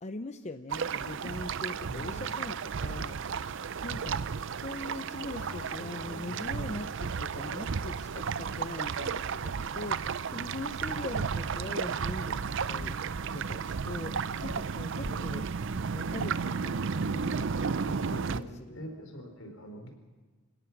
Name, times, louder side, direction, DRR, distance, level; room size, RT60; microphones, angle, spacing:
voice 1, 0.0-3.2 3.8-4.2 4.5-13.0 13.3-15.5 15.9-17.6 17.8-18.8, left 2 dB, 35° left, 9 dB, 0.7 m, -41 dB
sound 1, 0.7-18.4, right 6 dB, 60° right, 0.6 m, -33 dB
voice 2, 1.9-2.3 5.4-6.7 15.0-15.4 18.1-19.9, equal, 75° left, 5 dB, 4.4 m, -44 dB
sound 2, 12.1-18.4, equal, 10° right, 1.7 m, -48 dB
27.5 x 17.0 x 6.0 m, 1.4 s
head